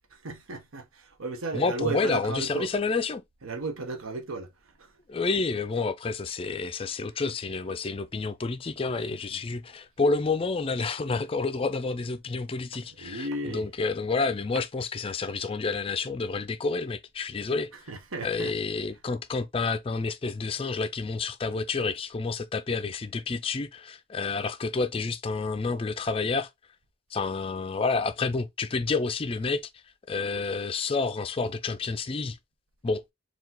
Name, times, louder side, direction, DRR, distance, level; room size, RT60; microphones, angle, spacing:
voice 1, 0.2-2.7 3.4-4.5 4.8-4.9 9.3-9.4 13.0-13.7 17.9-18.5, right 2 dB, 90° right, 0.8 m, -34 dB
voice 2, 1.5-3.2 5.1-17.7 18.2-26.5 27.1-29.6 30.1-32.4 32.8-33.0, left 4 dB, 25° left, 0.4 m, -29 dB
4.6 x 2.3 x 3.8 m
head